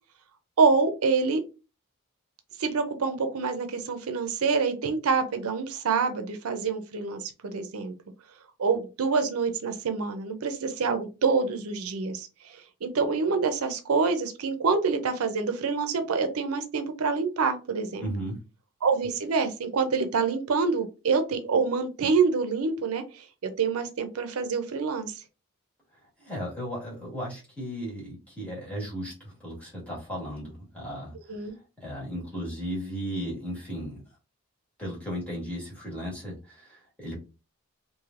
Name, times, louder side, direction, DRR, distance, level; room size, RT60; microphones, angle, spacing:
voice 1, 0.6-1.4 2.6-7.9 8.6-18.0 18.8-25.2 31.3-31.5, right 4 dB, 80° right, 7 dB, 0.5 m, -26 dB
voice 2, 18.0-18.4 26.2-31.1 31.8-34.0 34.8-37.2, equal, 5° left, -6 dB, 1.5 m, -35 dB
3.2 x 2.6 x 2.4 m, 0.30 s
head